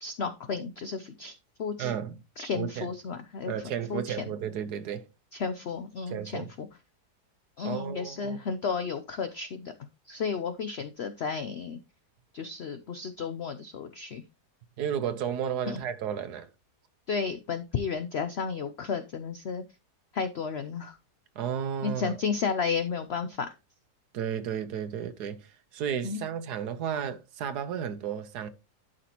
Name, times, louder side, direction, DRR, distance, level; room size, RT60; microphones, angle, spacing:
voice 1, 0.0-1.9 2.4-4.3 5.3-6.7 7.6-9.7 10.1-11.8 12.3-14.2 15.7-15.8 17.1-19.6 20.1-21.0 21.8-23.5 26.0-26.2, left 5 dB, 60° left, 0.7 m, -33 dB
voice 2, 1.8-2.2 2.5-2.9 3.4-5.0 6.1-6.5 7.6-8.4 14.8-16.5 21.4-22.1 24.1-28.5, right 8 dB, 80° right, 1.4 m, -33 dB
12.0 x 5.1 x 2.9 m
omnidirectional pair, 1.7 m